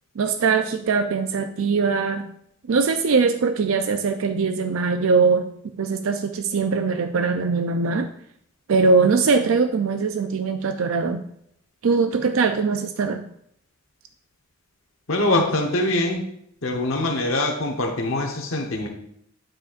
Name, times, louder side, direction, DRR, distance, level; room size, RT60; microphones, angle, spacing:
voice 1, 0.2-2.3 2.7-5.5 5.8-8.1 8.7-11.2 11.8-13.2, right 4 dB, 80° right, 8 dB, 0.4 m, -21 dB
voice 2, 15.1-16.3 16.6-18.9, left 2 dB, 75° left, 2 dB, 1.0 m, -23 dB
9.1 x 7.6 x 2.5 m, 0.72 s
head